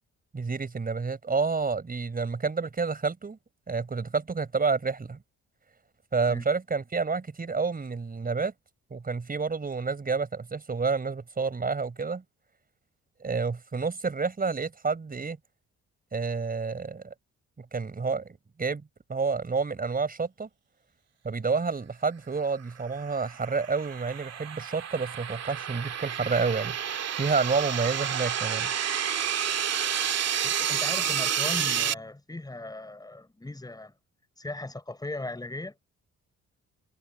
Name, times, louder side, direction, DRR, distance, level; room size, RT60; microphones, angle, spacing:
voice 1, 0.3-3.4 3.7-5.2 6.1-8.5 8.9-12.2 13.2-15.4 16.1-17.1 17.6-18.8 19.1-20.5 21.2-28.7, right 4 dB, 30° right, 5.3 m, -29 dB
sound 1, 23.0-31.9, right 9 dB, 55° right, 2.4 m, -30 dB
voice 2, 30.4-33.9 34.4-35.7, left 2 dB, 15° left, 5.5 m, -38 dB
cardioid pair, 90°, 30 cm